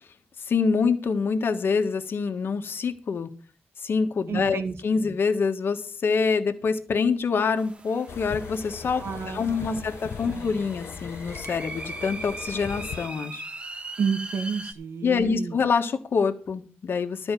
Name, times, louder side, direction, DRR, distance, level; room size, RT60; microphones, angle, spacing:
voice 1, 0.5-3.3 3.8-13.4 15.0-17.3, left 5 dB, 60° left, 7 dB, 1.6 m, -26 dB
voice 2, 4.3-4.8 9.0-9.9 10.3-10.5 14.0-15.6, right 6 dB, 90° right, 7 dB, 1.9 m, -30 dB
sound 1, 7.6-14.7, right 2 dB, 25° right, 1.1 m, -40 dB
sound 2, 8.1-13.1, left 6 dB, 75° left, 0.9 m, -39 dB
13.0 x 5.3 x 8.4 m, 0.40 s
wide cardioid pair, 125°, 4 cm